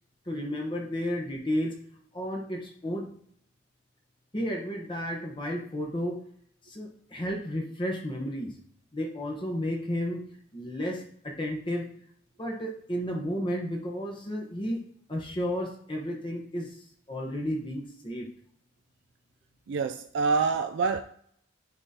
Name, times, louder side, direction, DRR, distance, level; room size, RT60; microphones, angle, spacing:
voice 1, 0.3-1.7 2.1-3.1 4.3-6.2 6.6-8.5 8.9-10.2 10.5-11.9 12.4-14.8 15.1-16.8 17.1-18.3, equal, 25° left, 1.0 m, -32 dB
voice 2, 19.7-21.0, right 4 dB, 65° right, 0.3 m, -26 dB
9.7 x 3.7 x 2.8 m
head